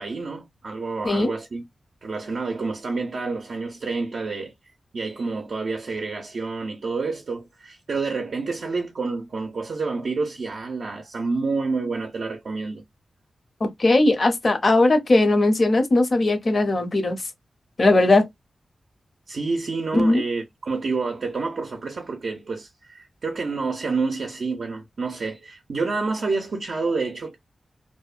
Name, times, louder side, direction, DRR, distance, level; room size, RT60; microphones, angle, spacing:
voice 1, 0.0-1.7 2.0-4.5 4.9-12.8 19.3-27.4, right 4 dB, 65° right, 0.4 m, -28 dB
voice 2, 13.6-17.2 17.8-18.3 19.9-20.2, left 2 dB, 45° left, 0.6 m, -19 dB
2.6 x 2.1 x 2.3 m
wide cardioid pair, 110°, 0 cm